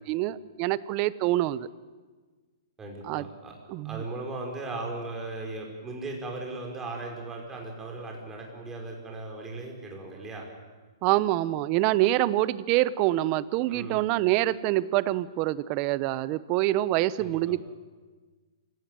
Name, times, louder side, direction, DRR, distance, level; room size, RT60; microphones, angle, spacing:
voice 1, 0.1-1.7 3.0-3.3 3.7-4.0 11.0-17.7, right 16 dB, 30° right, 17 dB, 0.9 m, -26 dB
voice 2, 2.8-3.5 3.8-10.5 13.7-14.0 17.2-17.6, right 2 dB, 10° right, 0 dB, 5.5 m, -37 dB
27.5 x 17.0 x 9.3 m, 1.4 s
hypercardioid pair, 150°, 2 cm